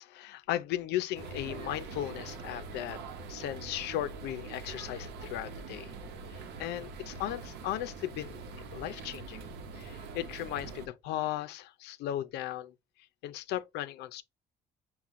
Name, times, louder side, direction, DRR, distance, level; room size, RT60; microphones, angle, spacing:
voice 1, 0.0-3.0 3.3-5.9 6.3-9.5 9.7-12.7 13.2-14.2, left 13 dB, 80° left, 0.5 m, -36 dB
sound 1, 1.1-10.9, right 4 dB, 80° right, 0.8 m, -44 dB
5.7 x 2.3 x 3.6 m
cardioid pair, 110°, 17 cm